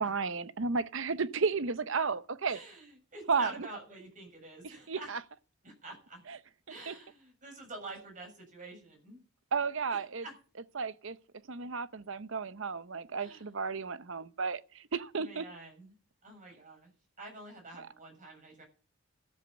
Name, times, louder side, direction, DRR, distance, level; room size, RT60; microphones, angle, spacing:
voice 1, 0.0-2.6 3.3-3.5 4.9-5.2 6.3-6.4 6.9-7.0 9.5-10.2 10.8-11.2 11.5-15.4 17.8-17.9, right 5 dB, 60° right, 0.7 m, -33 dB
voice 2, 2.5-5.1 5.6-6.2 6.7-9.2 9.9-10.3 13.2-13.5 15.1-15.9 16.2-16.9 17.2-18.6, right 2 dB, 35° right, 6.8 m, -47 dB
13.5 x 7.7 x 8.0 m
head